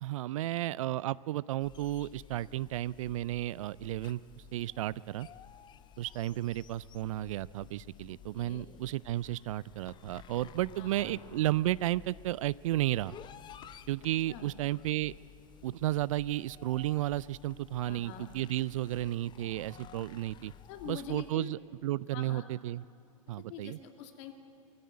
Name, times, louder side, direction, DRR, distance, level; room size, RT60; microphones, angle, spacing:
voice 1, 0.0-5.3 6.0-13.2 13.9-15.1 15.6-20.5 20.9-22.8 23.3-23.8, right 15 dB, 65° right, 20 dB, 0.4 m, -33 dB
sound 1, 1.6-21.3, left 10 dB, 25° left, 0.7 m, -54 dB
voice 2, 8.1-8.7 10.8-11.2 14.3-14.5 17.8-18.3 20.7-21.5 22.1-22.5 23.4-24.3, left 8 dB, 55° left, 5 dB, 2.4 m, -45 dB
sound 2, 8.9-10.9 12.1-15.2 15.5-15.6 15.8-15.9 16.2-18.3 18.5-18.6 18.9-19.0 19.4-19.5 19.7-20.6, left 7 dB, 75° left, 1.7 m, -64 dB
22.5 x 14.0 x 9.6 m, 2.7 s
hypercardioid pair, 110°, 18 cm